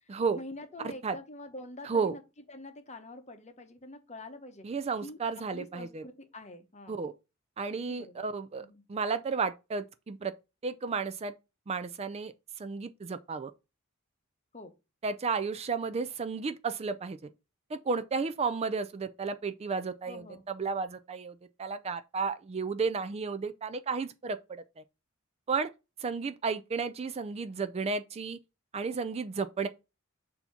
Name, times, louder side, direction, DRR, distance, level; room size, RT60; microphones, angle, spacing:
voice 1, 0.3-2.2 2.5-4.7 5.0-5.2 5.5-7.0 7.7-8.2 8.6-8.8 14.5-14.7 20.1-20.4, left 2 dB, 30° left, 1.0 m, -46 dB
voice 2, 0.8-1.2 1.8-2.2 4.6-6.0 6.9-7.1 7.6-10.3 10.6-11.3 11.7-12.3 12.6-13.5 15.0-17.3 17.7-21.3 21.6-24.6 25.5-25.7 26.0-28.4 28.7-29.7, right 5 dB, 30° right, 0.4 m, -33 dB
6.8 x 2.8 x 5.6 m
head